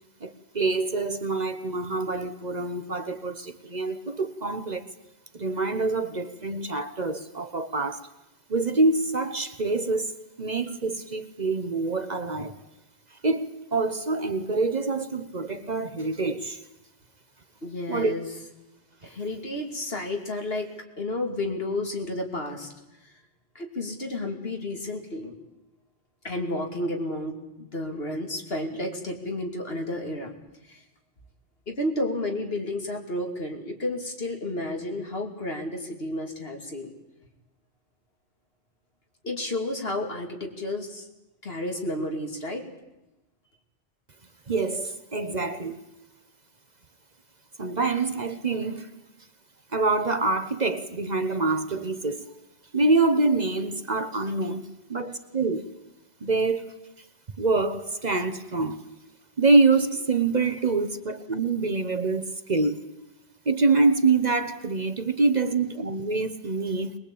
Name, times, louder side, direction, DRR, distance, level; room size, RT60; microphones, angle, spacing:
voice 1, 0.2-4.9 5.3-8.1 8.5-12.6 13.2-16.6 17.9-18.1 44.5-45.8 47.6-48.9 49.7-52.3 52.7-55.6 56.2-56.7 57.4-58.8 59.4-62.8 63.4-67.0, right 3 dB, 40° right, 1.2 m, -25 dB
voice 2, 17.6-18.3 19.0-20.7 21.0-22.7 23.0-23.1 23.5-25.3 26.2-30.3 30.6-30.8 31.7-36.9 39.2-41.1 41.4-42.6, left 1 dB, 65° left, 3.0 m, -31 dB
22.0 x 21.0 x 8.6 m
omnidirectional pair, 1.1 m